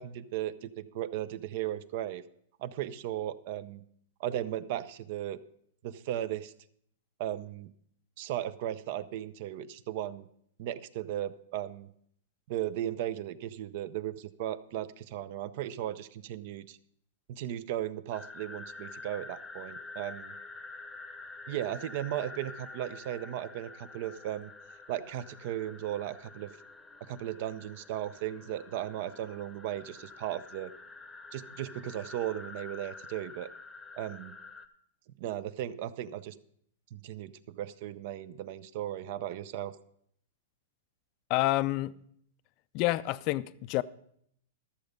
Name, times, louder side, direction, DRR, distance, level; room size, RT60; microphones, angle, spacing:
voice 1, 0.0-2.2 2.6-3.8 4.2-5.4 5.8-6.5 7.2-7.7 8.2-10.2 10.6-11.9 12.5-16.8 17.3-20.3 21.5-24.5 24.9-26.5 27.0-30.7 31.3-33.5 33.9-34.3 35.2-36.3 36.9-39.7, right 12 dB, 50° right, 0.6 m, -36 dB
sound 1, 18.1-34.7, left 3 dB, 5° left, 0.9 m, -48 dB
voice 2, 41.3-41.9 42.7-43.8, left 18 dB, 40° left, 0.4 m, -28 dB
13.0 x 6.9 x 5.1 m
hypercardioid pair, 145°, 0 cm